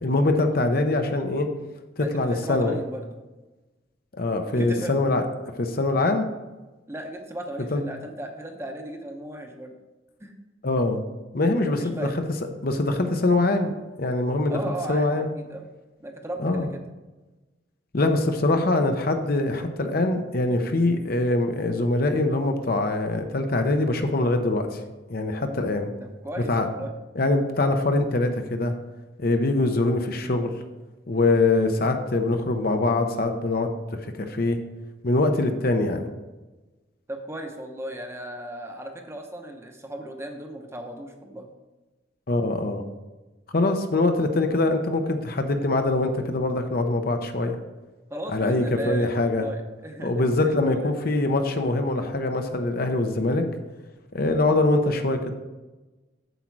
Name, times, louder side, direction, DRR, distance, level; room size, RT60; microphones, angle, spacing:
voice 1, 0.0-1.5 2.0-2.8 4.1-5.2 5.6-6.3 7.7-7.8 10.6-11.0 11.3-12.1 12.6-13.7 14.0-14.6 14.9-15.3 16.4-16.7 17.9-24.8 25.1-25.9 26.5-26.7 27.2-28.7 29.2-30.6 31.1-33.7 34.2-34.6 35.0-36.0 42.3-42.8 43.5-47.6 48.3-49.4 50.0-53.5 54.1-55.3, left 2 dB, 50° left, 6 dB, 0.8 m, -23 dB
voice 2, 2.0-3.2 4.5-5.1 5.9-6.1 6.9-9.8 10.2-10.3 11.7-12.2 14.5-15.6 16.0-16.8 26.0-26.9 37.1-41.5 48.1-50.9, right 1 dB, 15° right, 4 dB, 0.9 m, -36 dB
8.0 x 7.4 x 4.7 m, 1.2 s
head